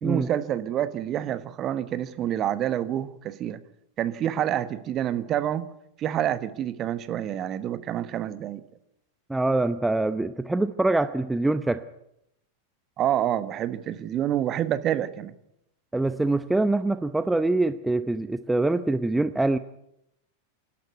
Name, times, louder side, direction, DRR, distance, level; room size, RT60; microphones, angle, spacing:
voice 1, 0.0-3.6 4.0-5.7 6.0-8.6 13.0-15.3, right 11 dB, 30° right, 12 dB, 1.3 m, -27 dB
voice 2, 9.3-11.8 15.9-19.6, right 2 dB, 5° right, 11 dB, 0.7 m, -24 dB
26.5 x 12.0 x 9.3 m, 0.81 s
figure-of-eight pair, 90°, 0 cm